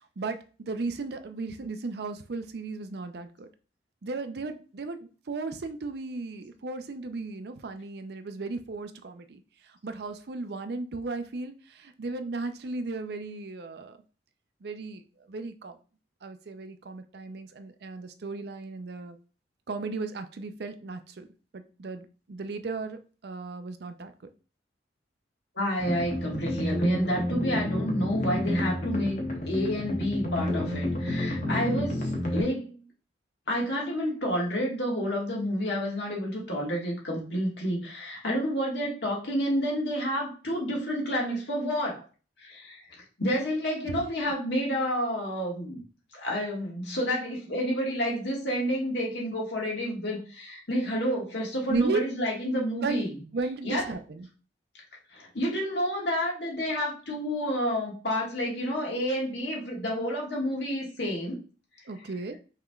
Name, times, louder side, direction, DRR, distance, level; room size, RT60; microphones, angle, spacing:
voice 1, 0.2-3.5 4.0-14.0 14.6-15.0 15.3-15.8 16.2-19.2 19.7-21.3 21.5-24.1 43.9-44.0 51.7-52.0 52.8-53.0 53.3-54.3 61.9-62.4, right 3 dB, 60° right, 9 dB, 0.5 m, -35 dB
voice 2, 25.5-32.7 33.5-42.0 42.4-42.8 43.2-45.8 46.1-53.1 53.6-53.9 55.1-61.4, equal, 70° left, -2 dB, 1.6 m, -29 dB
sound 1, 25.8-32.4, left 1 dB, 45° left, 0.9 m, -30 dB
5.6 x 3.2 x 2.3 m, 0.36 s
head